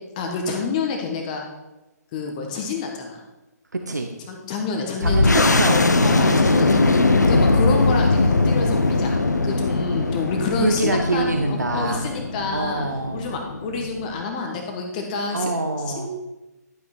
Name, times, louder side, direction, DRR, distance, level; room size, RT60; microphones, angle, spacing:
voice 1, 0.2-1.4 2.1-3.2 4.3-5.5 6.0-6.9 7.3-9.2 9.4-12.8 13.1-15.5 15.9-16.1, left 4 dB, 25° left, 2 dB, 1.2 m, -28 dB
voice 2, 3.7-4.1 5.0-6.3 7.2-7.5 10.6-12.1 12.5-13.2 15.3-16.1, right 2 dB, 75° right, 4 dB, 0.9 m, -25 dB
sound 1, 5.0-14.2, left 3 dB, 75° left, 0.8 m, -20 dB
11.5 x 5.7 x 4.4 m, 1.0 s
figure-of-eight pair, 135°, 9 cm